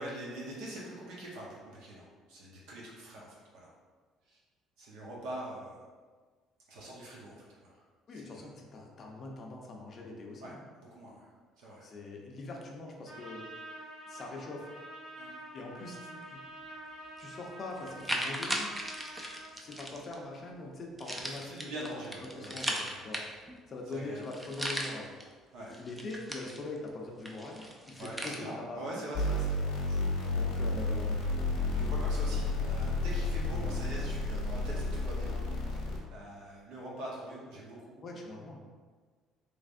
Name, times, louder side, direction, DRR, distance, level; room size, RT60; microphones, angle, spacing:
voice 1, 0.0-3.7 4.3-4.4 4.8-5.8 6.7-7.9 8.1-8.5 10.4-10.6 10.9-11.3 11.6-11.9 15.2-15.3 21.3-23.1 23.9-24.2 25.5-25.8 28.0-30.1 31.7-35.4 35.7-38.0, right 1 dB, 80° right, -4 dB, 1.0 m, -44 dB
voice 2, 8.1-10.6 11.8-13.4 14.1-14.7 15.5-16.4 17.2-18.7 19.5-22.0 22.4-22.8 23.0-23.2 23.7-25.1 25.8-29.0 30.3-31.2 38.0-38.7, left 2 dB, 40° left, 0 dB, 0.6 m, -43 dB
Trumpet, 13.0-19.5, right 1 dB, 50° right, 0.9 m, -47 dB
sound 1, 17.2-17.3 17.8-20.1 21.0-23.6 23.9-24.0 24.2-25.2 25.7-26.9 27.2-28.4, equal, 10° right, 0.4 m, -37 dB
sound 2, 29.1-36.0, left 2 dB, 75° left, 0.8 m, -31 dB
3.3 x 3.2 x 2.6 m, 1.5 s
cardioid pair, 115°, 0 cm